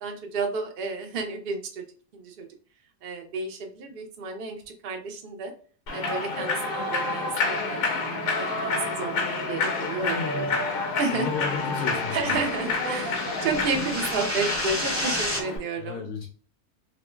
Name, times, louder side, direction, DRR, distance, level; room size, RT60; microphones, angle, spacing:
voice 1, 0.0-1.8 2.1-2.5 3.0-5.5 5.9-10.4 11.0-11.3 12.1-16.0, right 4 dB, 60° right, 3 dB, 0.6 m, -31 dB
Human voice / Clapping / Cheering, 5.9-15.6, left 3 dB, 85° left, 1.3 m, -29 dB
voice 2, 10.0-10.5 11.1-12.4 15.8-16.3, left 4 dB, 65° left, 3 dB, 0.7 m, -33 dB
sound 1, 11.0-15.4, left 1 dB, 15° left, 0.6 m, -32 dB
3.0 x 2.0 x 3.2 m, 0.41 s
omnidirectional pair, 1.6 m